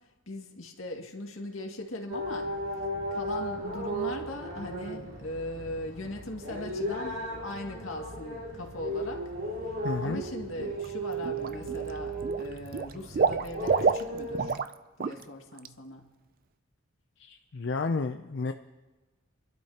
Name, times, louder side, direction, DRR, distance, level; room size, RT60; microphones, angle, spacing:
voice 1, 0.3-2.5 3.1-9.3 9.6-14.6 15.0-16.1, left 1 dB, 80° left, 1 dB, 2.0 m, -39 dB
sound 1, 2.1-14.5, right 1 dB, 75° right, 3.3 m, -36 dB
voice 2, 9.8-10.2 17.2-18.5, left 3 dB, 60° left, 6 dB, 0.5 m, -31 dB
Water / Liquid, 10.6-10.9 11.2-11.9 12.2-14.7 15.0-15.2 15.6-15.7, right 5 dB, 45° right, 0.4 m, -28 dB
27.5 x 12.0 x 2.9 m, 1.2 s
head